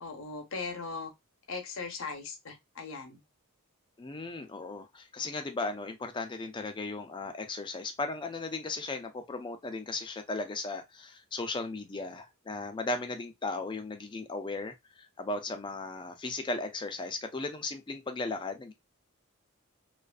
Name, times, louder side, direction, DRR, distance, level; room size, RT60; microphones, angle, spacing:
voice 1, 0.0-1.1 1.5-3.2, left 4 dB, 60° left, 0.7 m, -39 dB
voice 2, 4.0-18.7, left 3 dB, 20° left, 0.4 m, -36 dB
2.4 x 2.4 x 2.2 m
head